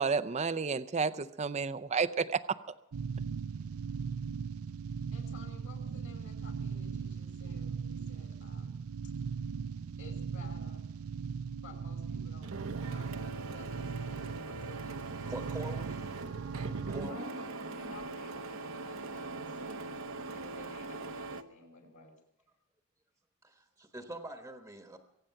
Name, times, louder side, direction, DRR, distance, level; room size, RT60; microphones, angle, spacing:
voice 1, 0.0-2.4, right 5 dB, 30° right, 13 dB, 0.5 m, -31 dB
sound 1, 2.9-17.1, right 6 dB, 90° right, 0.5 m, -39 dB
voice 2, 5.1-8.8 10.0-10.9 11.6-12.6 12.9-15.4 17.0-19.9 20.3-22.2, left 3 dB, 65° left, 2 dB, 5.5 m, -54 dB
Printer, 12.4-21.4, right 3 dB, 65° right, 0.9 m, -41 dB
voice 3, 15.2-16.1 16.9-17.3 23.4-25.0, right 1 dB, 10° right, 4 dB, 1.2 m, -44 dB
23.5 x 8.9 x 5.8 m, 0.85 s
head